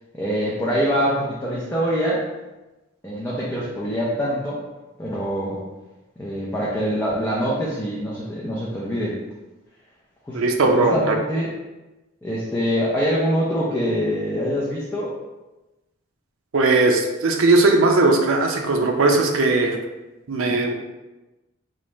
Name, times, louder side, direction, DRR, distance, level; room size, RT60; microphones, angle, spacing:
voice 1, 0.1-2.2 3.0-4.6 5.0-5.6 6.2-9.2 10.3-10.4 10.7-11.5 12.2-15.1, equal, 10° left, -7 dB, 0.5 m, -24 dB
voice 2, 10.3-11.1 16.5-19.8 20.3-20.7, right 3 dB, 80° right, 2 dB, 0.5 m, -18 dB
3.1 x 2.4 x 4.0 m, 1.1 s
head